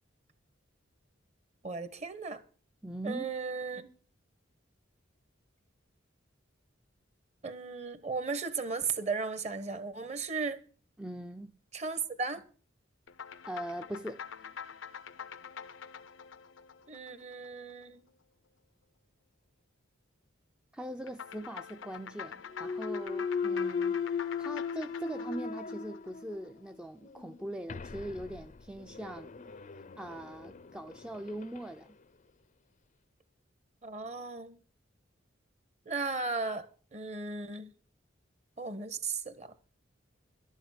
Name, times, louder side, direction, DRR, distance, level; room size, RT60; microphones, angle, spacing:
voice 1, 1.6-2.4 3.0-3.9 7.4-10.6 11.7-12.4 16.9-18.0 33.8-34.6 35.8-36.7 36.9-37.7 38.6-39.5, right 4 dB, 35° right, 1.3 m, -36 dB
voice 2, 2.8-3.3 11.0-11.5 13.5-14.2 20.7-24.0 24.4-29.3 30.0-32.0, right 1 dB, 5° right, 0.5 m, -41 dB
sound 1, 13.1-17.7 21.1-26.5, left 7 dB, 85° left, 0.7 m, -46 dB
Thump thud, 22.5-26.5 27.0-31.7, left 5 dB, 40° left, 0.6 m, -37 dB
12.0 x 7.2 x 8.0 m
head